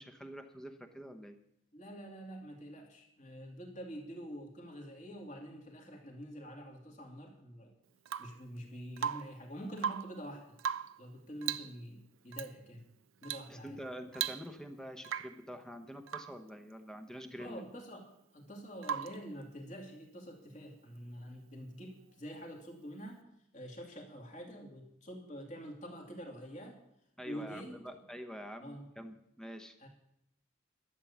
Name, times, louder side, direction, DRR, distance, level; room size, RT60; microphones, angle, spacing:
voice 1, 0.0-1.3 13.5-17.6 27.2-29.7, equal, 5° left, 7 dB, 0.9 m, -46 dB
voice 2, 1.7-7.7 8.2-10.6 11.0-12.8 13.2-13.8 17.4-18.0 18.3-23.3 23.5-26.8 27.2-27.7 28.6-28.9 29.8-29.9, equal, 35° left, 1 dB, 2.5 m, -46 dB
Rain / Water tap faucet / Drip, 8.0-8.4 9.0-9.4 9.7-10.2 10.6-11.0 11.4-11.8 12.3-12.5 13.2-13.5 13.8-13.9 14.1-14.7 15.0-15.4 16.1-16.4 18.8-19.3 21.2-21.3, right 8 dB, 80° right, 0.5 m, -38 dB
12.5 x 8.5 x 7.2 m, 0.78 s
head